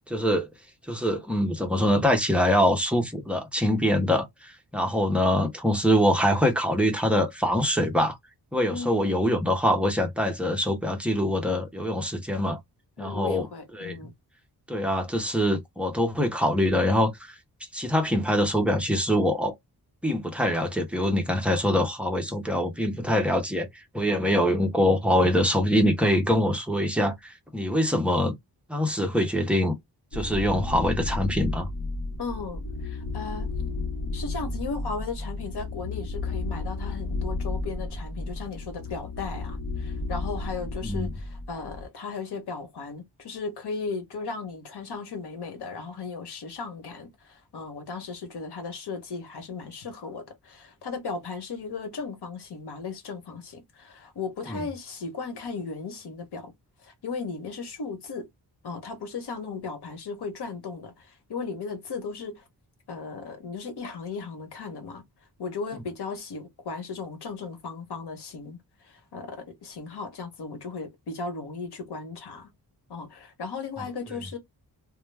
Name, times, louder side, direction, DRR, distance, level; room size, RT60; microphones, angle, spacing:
voice 1, 0.1-0.5 0.9-8.2 8.5-12.6 13.0-13.4 13.8-14.0 14.7-17.4 17.7-19.5 20.0-23.7 23.9-28.3 28.7-29.7 30.1-31.7 40.8-41.1 54.5-54.6, equal, 5° right, 0.6 m, -24 dB
voice 2, 8.7-9.5 13.0-14.1 32.2-33.5 34.1-56.5 56.8-58.3 58.6-62.4 62.9-65.0 65.4-68.6 68.8-72.5 72.9-74.4, left 4 dB, 85° left, 1.0 m, -36 dB
sound 1, 30.1-41.9, left 2 dB, 60° left, 0.9 m, -33 dB
2.2 x 2.2 x 3.2 m
wide cardioid pair, 120°, 39 cm